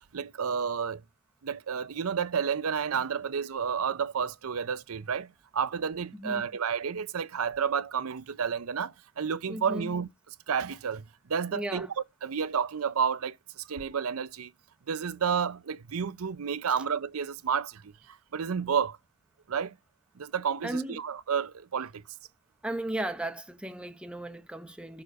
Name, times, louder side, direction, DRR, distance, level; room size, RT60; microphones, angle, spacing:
voice 1, 0.1-1.0 1.4-5.3 5.5-8.9 9.2-10.1 10.5-11.0 11.3-11.9 12.2-13.3 13.7-14.5 14.9-17.8 18.3-19.0 19.5-19.7 20.2-22.0, right 7 dB, 85° right, 0.6 m, -30 dB
voice 2, 6.1-6.4 9.5-9.9 11.5-11.9 20.6-21.0 22.6-25.0, right 1 dB, 5° right, 0.8 m, -35 dB
6.8 x 4.9 x 5.1 m
head